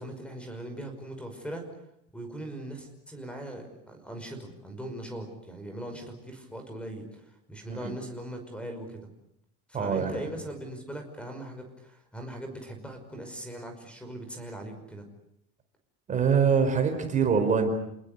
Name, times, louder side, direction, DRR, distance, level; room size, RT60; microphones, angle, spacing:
voice 1, 0.0-1.7 2.1-9.1 9.7-15.1, right 1 dB, 5° left, 6 dB, 5.6 m, -40 dB
voice 2, 9.7-10.2 16.1-17.7, right 6 dB, 25° right, 6 dB, 4.6 m, -24 dB
29.5 x 20.5 x 8.2 m, 0.78 s
cardioid pair, 160°, 32 cm